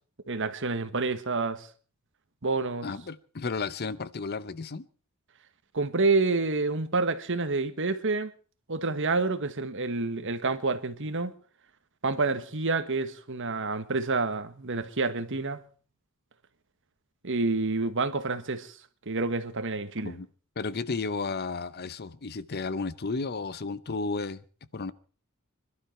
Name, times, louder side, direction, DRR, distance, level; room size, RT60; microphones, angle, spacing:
voice 1, 0.3-1.7 2.4-2.9 5.7-8.3 8.7-11.3 12.0-15.6 17.2-18.8 19.0-20.1, right 3 dB, 60° right, 1.5 m, -28 dB
voice 2, 2.8-4.9 20.0-20.3 20.6-24.4 24.7-24.9, left 4 dB, 45° left, 0.8 m, -33 dB
26.0 x 12.0 x 4.4 m
head